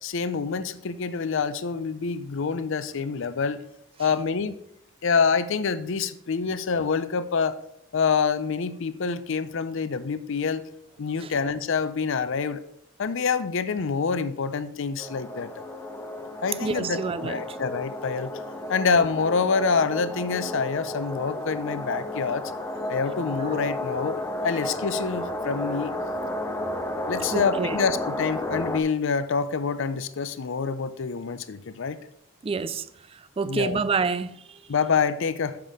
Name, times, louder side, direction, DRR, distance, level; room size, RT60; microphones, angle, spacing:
voice 1, 0.0-3.6 4.0-4.6 5.0-7.6 7.9-10.6 11.0-12.6 13.0-15.5 16.4-18.3 18.7-22.4 22.9-24.2 24.4-25.9 27.1-32.0 33.4-33.8 34.7-35.6, left 5 dB, 65° left, 0.6 m, -26 dB
sound 1, 15.0-28.8, left 1 dB, 15° left, 0.6 m, -32 dB
voice 2, 16.6-17.6 23.5-23.6 27.3-27.8 32.4-32.9 33.1-34.6, right 4 dB, 30° right, 0.4 m, -28 dB
7.1 x 5.9 x 4.9 m
head